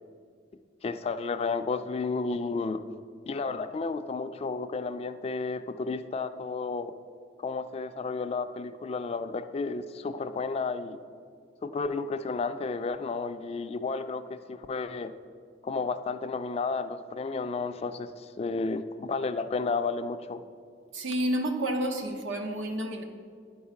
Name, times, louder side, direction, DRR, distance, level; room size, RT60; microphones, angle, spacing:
voice 1, 0.8-2.8 3.3-6.9 7.4-11.0 11.6-15.1 15.6-20.4, left 4 dB, 30° left, 10 dB, 0.3 m, -32 dB
voice 2, 20.9-23.0, right 1 dB, 85° right, 4 dB, 0.9 m, -30 dB
10.5 x 4.7 x 5.7 m, 2.1 s
head